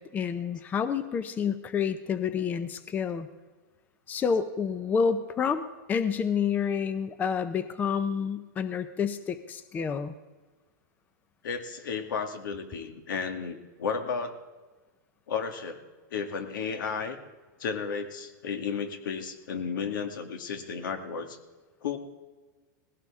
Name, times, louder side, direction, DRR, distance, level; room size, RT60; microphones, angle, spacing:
voice 1, 0.0-3.3 4.1-10.1, left 6 dB, 15° left, 12 dB, 0.6 m, -29 dB
voice 2, 11.4-14.4 15.3-15.8 16.1-17.2 17.6-21.4 21.8-22.0, left 6 dB, 80° left, 7 dB, 2.0 m, -33 dB
19.0 x 16.0 x 3.6 m, 1.3 s
hypercardioid pair, 150°, 11 cm